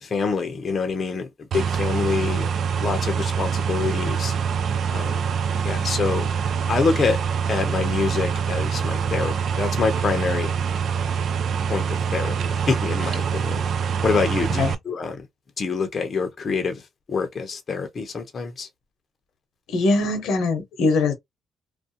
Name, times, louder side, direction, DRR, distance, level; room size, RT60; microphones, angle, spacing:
voice 1, 0.0-1.3 1.5-2.5 2.8-4.3 4.9-5.3 5.6-6.3 6.7-7.2 7.5-10.5 11.7-13.6 14.0-15.3 15.6-16.8 17.1-18.7, left 4 dB, 45° left, 0.6 m, -26 dB
sound 1, 1.5-14.7, right 6 dB, 60° right, 0.3 m, -25 dB
voice 2, 19.7-21.1, left 3 dB, 80° left, 0.8 m, -21 dB
2.4 x 2.1 x 2.7 m
cardioid pair, 90°, 0 cm